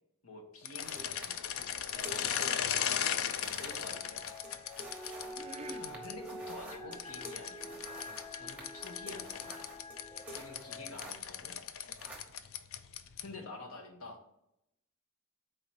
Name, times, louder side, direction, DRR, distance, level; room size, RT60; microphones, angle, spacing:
voice 1, 0.2-1.3 3.6-4.2 5.8-7.8 8.4-9.5 10.3-11.5 13.2-14.2, left 2 dB, 85° left, 1.2 m, -48 dB
sound 1, 0.6-6.1 6.9-13.4, left 9 dB, 70° left, 0.4 m, -37 dB
sound 2, 0.8-11.5 11.8-13.2, equal, 5° right, 0.9 m, -51 dB
voice 2, 1.9-2.5 5.2-6.0 8.1-8.2 11.9-12.0, right 3 dB, 30° right, 0.4 m, -50 dB
sound 3, 3.6-10.9, left 1 dB, 15° left, 0.7 m, -47 dB
4.4 x 3.9 x 5.5 m
head